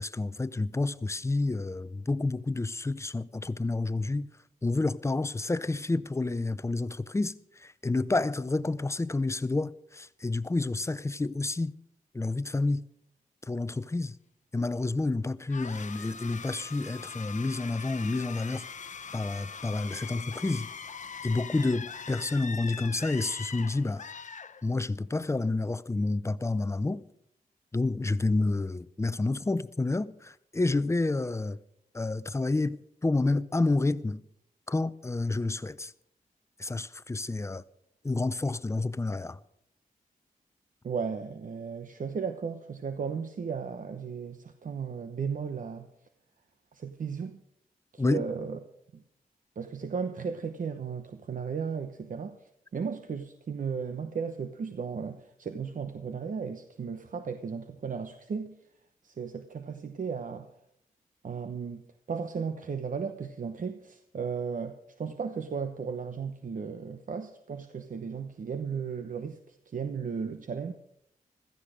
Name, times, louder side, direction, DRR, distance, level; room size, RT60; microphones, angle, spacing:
voice 1, 0.0-4.3 4.6-11.7 12.1-12.9 13.5-14.2 14.5-18.7 19.1-20.7 21.2-24.0 24.6-27.0 27.7-31.6 31.9-34.2 34.7-35.9 36.6-37.6 38.0-39.4 48.0-48.2, left 2 dB, 20° left, 0.6 m, -29 dB
sound 1, 15.5-25.1, left 6 dB, 55° left, 0.8 m, -42 dB
voice 2, 40.8-45.9 46.7-47.4 47.9-48.6 48.9-49.0 49.6-58.6 59.0-60.5 61.2-61.8 62.1-70.7, right 6 dB, 65° right, 1.0 m, -35 dB
16.0 x 14.0 x 5.1 m
wide cardioid pair, 80°, 15 cm